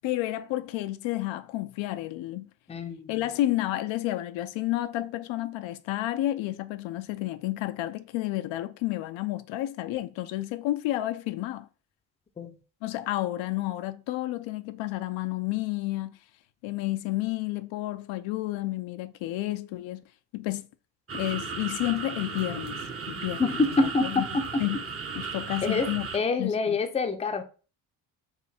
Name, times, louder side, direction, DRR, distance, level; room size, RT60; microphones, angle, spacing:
voice 1, 0.0-2.5 3.1-11.7 12.8-16.2 16.6-20.0 20.3-20.7 21.1-22.8 23.1-24.3 24.6-24.8 25.2-26.1 26.4-26.8, left 16 dB, 75° left, 0.5 m, -31 dB
voice 2, 2.7-3.1 12.4-12.6 23.4-24.6 25.6-27.4, left 3 dB, 15° left, 0.5 m, -26 dB
sound 1, 21.1-26.2, right 5 dB, 30° right, 0.7 m, -35 dB
4.7 x 2.6 x 3.4 m
cardioid pair, 85°, 47 cm